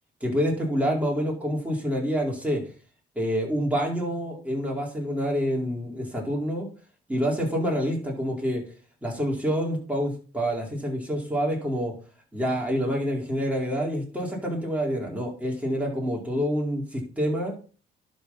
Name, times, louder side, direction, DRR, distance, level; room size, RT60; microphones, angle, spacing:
voice 1, 0.2-2.6 3.1-6.7 7.1-8.6 9.0-11.9 12.3-17.5, equal, 5° right, -2 dB, 4.4 m, -27 dB
11.0 x 4.8 x 5.8 m, 0.38 s
cardioid pair, 90°, 20 cm